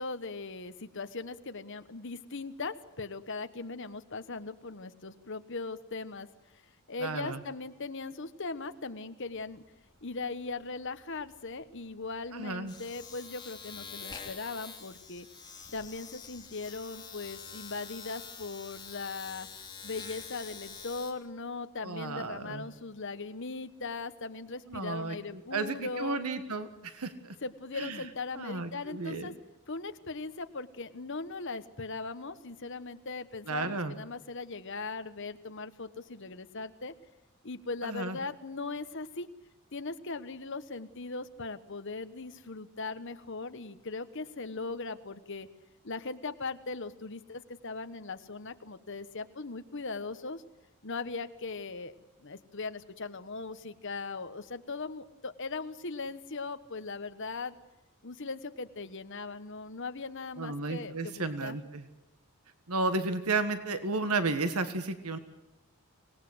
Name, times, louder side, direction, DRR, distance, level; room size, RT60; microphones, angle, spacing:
voice 1, 0.0-6.3 6.9-9.6 10.0-15.3 15.7-26.2 27.4-29.3 29.7-36.9 37.4-39.3 39.7-45.5 45.8-50.4 50.8-57.6 58.0-61.6, left 3 dB, 55° left, 10 dB, 1.3 m, -39 dB
voice 2, 7.0-7.4 12.3-12.7 21.8-22.6 24.7-27.4 27.7-28.0 28.3-29.3 33.5-33.9 37.8-38.2 60.4-61.8 62.7-65.2, right 3 dB, 85° right, 10 dB, 1.6 m, -33 dB
Domestic sounds home sounds, 9.3-9.6 9.8-21.1, left 6 dB, 20° left, 2.9 m, -46 dB
25.5 x 19.0 x 8.0 m, 0.98 s
head